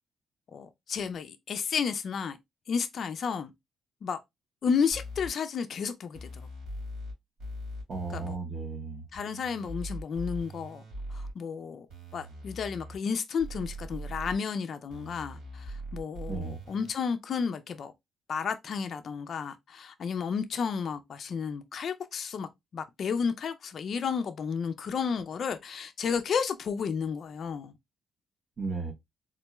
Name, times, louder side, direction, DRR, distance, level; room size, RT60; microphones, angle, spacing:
voice 1, 0.5-2.4 2.7-3.5 4.0-4.2 4.6-6.4 8.1-8.4 9.1-10.8 11.1-11.9 12.1-17.9 18.3-27.7, left 6 dB, 55° left, 0.4 m, -32 dB
sound 1, 4.9-5.3 6.1-7.1 7.4-8.3 9.1-11.3 11.9-13.0 13.4-14.4 14.9-16.9, equal, 75° right, 2.3 m, -41 dB
voice 2, 7.9-9.0 16.3-16.6 28.6-28.9, right 4 dB, 50° right, 0.8 m, -34 dB
3.7 x 2.2 x 2.9 m
cardioid pair, 90°, 0 cm